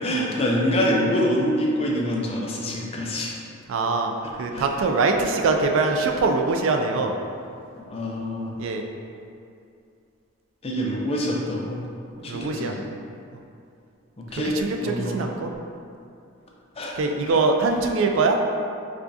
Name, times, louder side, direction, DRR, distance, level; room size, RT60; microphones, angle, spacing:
voice 1, 0.0-3.3 4.5-4.6 7.8-8.5 10.6-11.8 12.2-12.9 14.2-14.5 14.8-15.3 16.8-16.9, equal, 30° left, -3 dB, 0.5 m, -25 dB
voice 2, 3.7-7.1 8.6-8.8 12.2-12.7 14.3-15.5 17.0-18.4, right 3 dB, 70° right, 3 dB, 0.3 m, -23 dB
4.8 x 2.4 x 2.6 m, 2.5 s
head